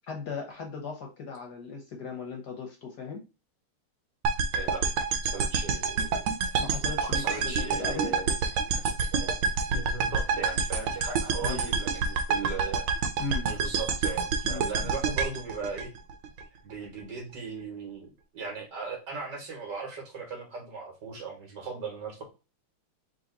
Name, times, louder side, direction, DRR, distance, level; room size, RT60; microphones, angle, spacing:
voice 1, 0.1-3.2 6.6-8.1 11.4-11.6 13.2-13.5 13.9-14.0 14.4-14.9, left 4 dB, 60° left, 3 dB, 1.2 m, -37 dB
sound 1, 4.2-16.4, right 5 dB, 75° right, 1.5 m, -28 dB
voice 2, 4.5-4.9 5.3-6.3 7.0-8.3 9.2-9.4 9.7-12.9 13.4-15.9 16.6-22.2, right 4 dB, 55° right, 1 dB, 1.9 m, -38 dB
3.9 x 2.9 x 3.9 m, 0.31 s
omnidirectional pair, 2.3 m